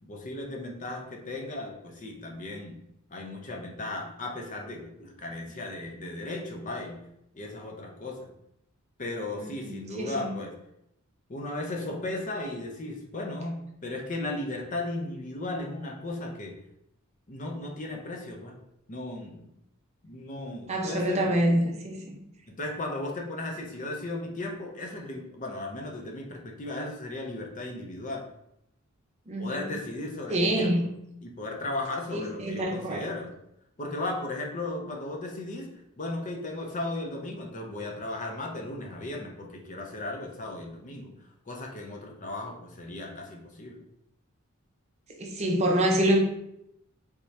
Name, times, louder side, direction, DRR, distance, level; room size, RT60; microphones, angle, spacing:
voice 1, 0.0-2.8 3.1-7.0 7.3-8.3 9.0-10.6 11.3-16.6 17.3-18.5 18.9-19.5 20.0-21.3 22.5-28.2 29.4-30.9 31.2-33.3 33.8-35.7 36.0-41.1 41.5-43.8, left 2 dB, 35° left, 1 dB, 0.6 m, -36 dB
voice 2, 9.4-10.3 20.7-22.2 29.3-29.7 30.3-30.9 32.1-33.0 45.2-46.2, right 1 dB, 30° right, 1 dB, 0.6 m, -26 dB
3.6 x 2.8 x 3.2 m, 0.78 s
head